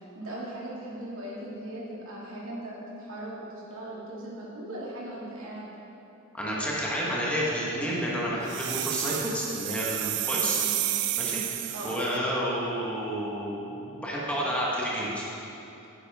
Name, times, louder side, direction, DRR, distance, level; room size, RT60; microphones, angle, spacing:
voice 1, 0.1-5.7 10.4-10.8 11.7-12.1, right 1 dB, 75° right, -6 dB, 2.1 m, -39 dB
voice 2, 6.3-10.6 11.2-15.2, equal, 5° left, -6 dB, 1.3 m, -30 dB
sound 1, 8.5-12.1, right 13 dB, 55° right, 0.4 m, -30 dB
9.7 x 8.9 x 3.6 m, 2.9 s
head